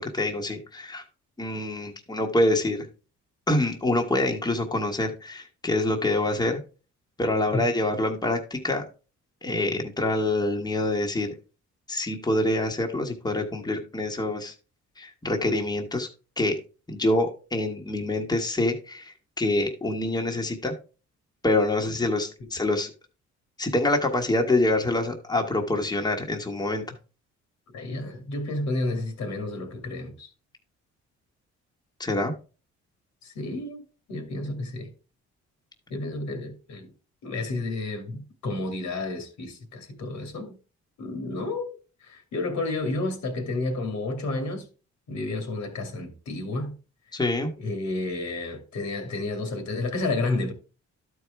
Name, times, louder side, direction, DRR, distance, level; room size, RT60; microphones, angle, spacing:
voice 1, 0.1-1.0 1.4-2.9 3.5-6.6 7.2-8.8 9.4-11.3 11.9-14.5 15.0-16.1 16.4-16.5 16.9-20.7 21.4-22.9 23.6-26.8 32.0-32.3 47.1-47.5, left 2 dB, 15° left, 1.4 m, -26 dB
voice 2, 27.7-30.3 33.2-33.8 34.1-34.9 35.9-36.9 37.2-40.6 41.0-44.7 45.1-46.8 47.6-50.5, left 2 dB, 70° left, 2.4 m, -31 dB
12.0 x 4.7 x 3.4 m
cardioid pair, 90°, 30 cm